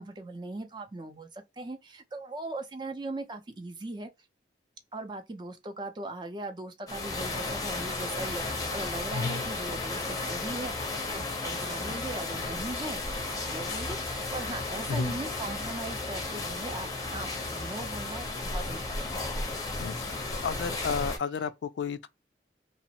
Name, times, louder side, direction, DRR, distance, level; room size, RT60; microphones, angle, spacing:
voice 1, 0.0-4.1 4.9-19.2, right 2 dB, 25° right, 0.4 m, -39 dB
sound 1, 6.9-21.2, left 2 dB, 20° left, 0.6 m, -34 dB
voice 2, 9.1-9.4 11.9-12.0 14.9-15.1 19.8-22.1, left 5 dB, 85° left, 0.3 m, -32 dB
2.8 x 2.0 x 2.7 m
head